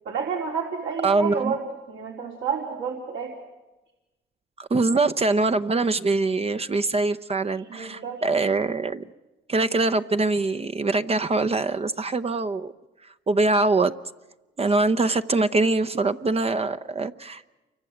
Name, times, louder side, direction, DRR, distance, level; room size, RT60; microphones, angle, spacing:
voice 1, 0.0-1.6 1.9-3.3 7.5-8.2, right 6 dB, 70° right, -1 dB, 3.6 m, -30 dB
voice 2, 1.0-1.5 4.6-9.1 9.5-12.7 13.0-13.9 14.6-17.5, right 3 dB, 30° right, 10 dB, 0.8 m, -23 dB
28.5 x 24.5 x 8.0 m, 1.1 s
cardioid pair, 90°, 20 cm